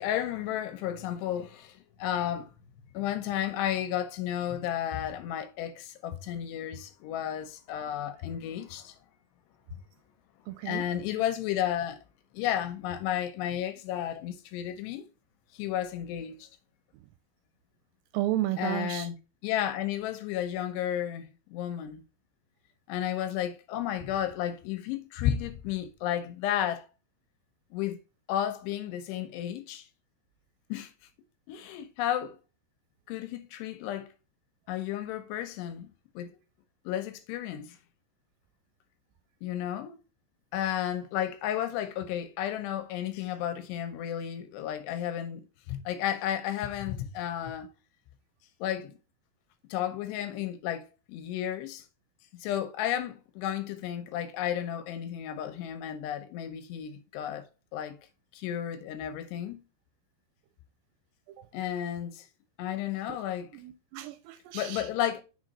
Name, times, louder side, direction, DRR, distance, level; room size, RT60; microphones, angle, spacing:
voice 1, 0.0-2.5 2.9-9.0 10.7-12.0 12.3-15.1 15.5-16.5 18.6-19.2 19.4-22.0 22.9-26.9 27.7-28.0 28.3-29.9 30.7-30.9 31.5-32.4 33.1-34.1 34.7-36.3 36.9-37.8 39.4-40.0 40.5-47.7 48.6-48.9 49.7-51.8 52.3-57.5 57.7-58.0 58.3-59.6 61.5-62.3 62.6-63.5 64.5-65.2, left 11 dB, 80° left, 2.7 m, -33 dB
voice 2, 10.5-10.8 18.1-19.1 63.5-64.9, right 14 dB, 85° right, 2.5 m, -32 dB
6.3 x 3.7 x 4.0 m
omnidirectional pair, 5.1 m